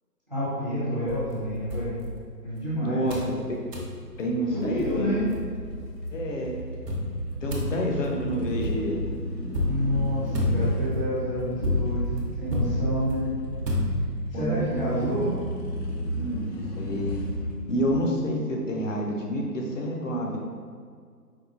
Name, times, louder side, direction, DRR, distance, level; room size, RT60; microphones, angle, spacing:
voice 1, 0.3-1.9 2.4-3.2 4.5-5.3 9.7-12.1 12.4-13.3 14.3-15.4, equal, 30° right, -10 dB, 0.4 m, -28 dB
sound 1, 1.1-2.6 3.1-3.4 3.7-4.0 4.5-4.6 4.8-5.9 6.9-14.4, left 1 dB, 70° right, 0.8 m, -30 dB
voice 2, 2.8-3.2 4.2-5.1 6.1-6.5 7.4-9.0 13.4-13.5 14.3-15.3 16.2-16.4 16.8-17.2 17.7-20.4, equal, 50° left, 0 dB, 0.6 m, -28 dB
sound 2, 4.5-18.1, equal, 85° left, 0.8 m, -34 dB
4.6 x 2.1 x 2.5 m, 2.1 s
figure-of-eight pair, 155°, 50 cm